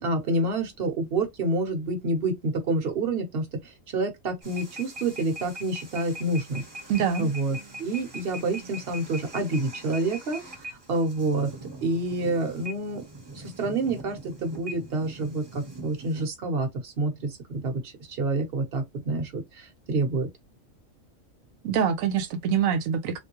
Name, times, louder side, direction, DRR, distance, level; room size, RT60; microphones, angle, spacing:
voice 1, 0.0-6.6 7.2-11.5 11.8-13.1 13.3-20.3, right 2 dB, 50° right, 1.1 m, -28 dB
sound 1, 4.4-16.3, right 1 dB, 20° right, 0.8 m, -42 dB
voice 2, 6.9-7.3 21.6-23.2, right 7 dB, 90° right, 1.0 m, -25 dB
3.3 x 2.7 x 2.9 m
omnidirectional pair, 1.4 m